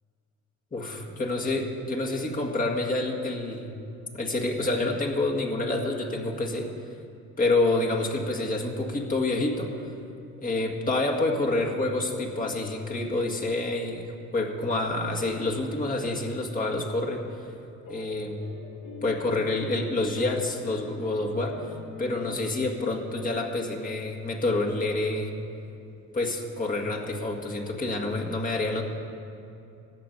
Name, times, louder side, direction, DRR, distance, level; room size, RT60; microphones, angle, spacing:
voice 1, 0.7-3.8 4.1-6.7 7.4-9.7 10.4-14.1 14.3-17.2 17.9-18.4 19.0-21.6 22.0-25.3 26.1-28.8, left 2 dB, 25° left, 0 dB, 1.9 m, -28 dB
sound 1, 17.8-24.4, left 4 dB, 80° left, 2.0 m, -46 dB
14.0 x 6.1 x 9.2 m, 2.7 s
cardioid pair, 90°, 30 cm